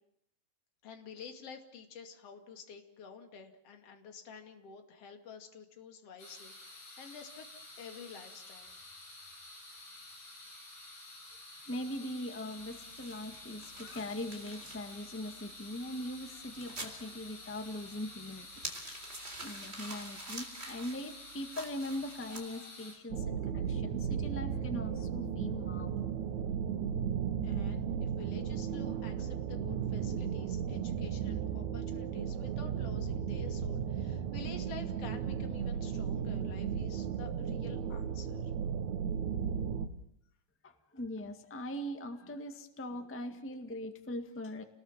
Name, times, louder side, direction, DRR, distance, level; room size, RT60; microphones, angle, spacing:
voice 1, 0.8-7.5 7.8-8.7 27.4-38.5, left 6 dB, 45° left, 5 dB, 3.3 m, -50 dB
sound 1, 6.2-22.9, left 2 dB, 75° left, 8.0 m, -50 dB
voice 2, 11.7-18.5 18.7-18.9 19.2-26.0 40.6-44.6, left 1 dB, 10° left, 6 dB, 0.9 m, -41 dB
sound 2, 12.6-22.4, right 2 dB, 20° right, 3.7 m, -48 dB
sound 3, 23.1-39.9, right 8 dB, 65° right, 2.3 m, -35 dB
29.0 x 20.5 x 7.4 m, 0.73 s
omnidirectional pair, 3.9 m